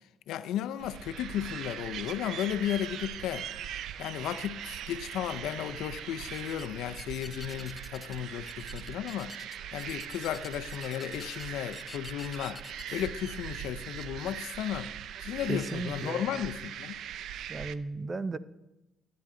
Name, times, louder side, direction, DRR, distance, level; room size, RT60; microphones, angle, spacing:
voice 1, 0.3-3.5 4.0-9.4 9.7-12.6 12.9-14.9 15.2-17.0, left 11 dB, 90° left, 0.5 m, -34 dB
sound 1, 0.8-17.8, right 10 dB, 80° right, 0.4 m, -41 dB
sound 2, 6.3-6.7 7.0-8.2 8.5-13.1, left 3 dB, 25° left, 0.4 m, -48 dB
voice 2, 15.5-16.5 17.5-18.4, right 3 dB, 30° right, 0.6 m, -35 dB
17.5 x 9.4 x 3.8 m
cardioid pair, 90°, 0 cm